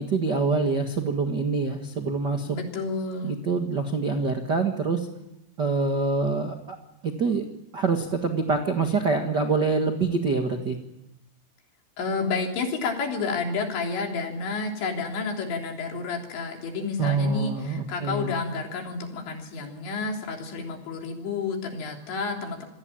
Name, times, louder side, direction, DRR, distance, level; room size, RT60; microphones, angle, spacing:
voice 1, 0.0-2.6 3.2-5.1 5.6-6.8 7.0-7.4 7.7-10.8 17.0-18.3, right 4 dB, 65° right, 5 dB, 1.0 m, -25 dB
voice 2, 2.5-3.3 12.0-22.7, left 4 dB, 80° left, 2 dB, 5.8 m, -30 dB
27.5 x 19.5 x 8.8 m, 0.88 s
omnidirectional pair, 5.2 m